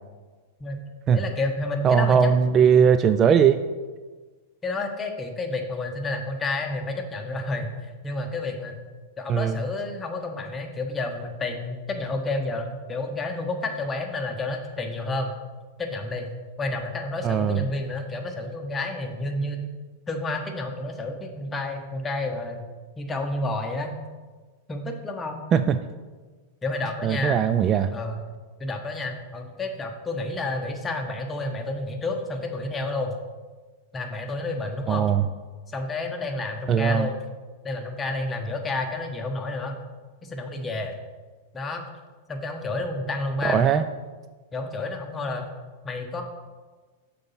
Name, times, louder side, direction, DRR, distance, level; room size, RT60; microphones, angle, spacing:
voice 1, 1.1-2.3 2.6-2.9 4.6-8.8 9.2-15.3 15.8-16.3 16.6-19.7 20.1-22.6 23.0-24.0 24.7-25.4 26.6-27.4 27.9-28.2 28.6-33.1 33.9-35.1 35.7-37.2 37.6-39.8 40.2-41.0 41.5-41.8 42.3-43.6 44.5-45.5 45.8-46.2, left 2 dB, 20° left, 4 dB, 1.0 m, -30 dB
voice 2, 1.8-3.6 9.3-9.6 17.2-17.6 25.5-25.8 27.0-27.9 34.9-35.3 36.7-37.1 43.4-43.8, right 7 dB, 30° right, 10 dB, 0.3 m, -19 dB
6.5 x 4.1 x 5.6 m, 1.4 s
hypercardioid pair, 100°, 0 cm